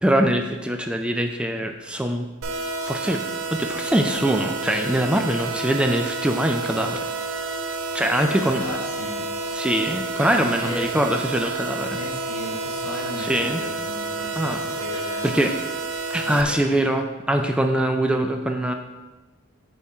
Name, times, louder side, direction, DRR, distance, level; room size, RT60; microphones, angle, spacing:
voice 1, 0.0-2.3 2.8-3.2 3.5-7.1 7.9-8.6 9.5-12.0 13.2-13.6 14.4-14.6 15.2-15.5 16.1-18.7, right 1 dB, 5° right, 4 dB, 0.3 m, -23 dB
sound 1, 2.4-16.4, right 3 dB, 75° right, 0.7 m, -30 dB
voice 2, 8.3-9.2 10.3-10.9 11.9-15.5 16.2-16.7, left 1 dB, 80° left, 1 dB, 1.2 m, -36 dB
8.2 x 3.6 x 4.3 m, 1.2 s
head